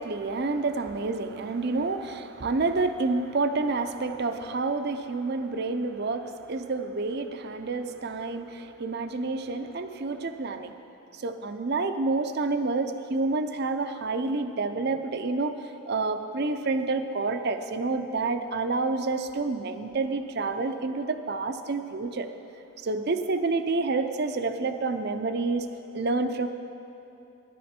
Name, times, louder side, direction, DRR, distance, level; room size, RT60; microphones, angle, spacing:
voice 1, 0.0-10.7 11.1-15.6 15.9-22.3 22.8-25.7 25.9-26.5, right 3 dB, 50° right, 8 dB, 0.5 m, -28 dB
13.5 x 11.0 x 4.4 m, 2.8 s
head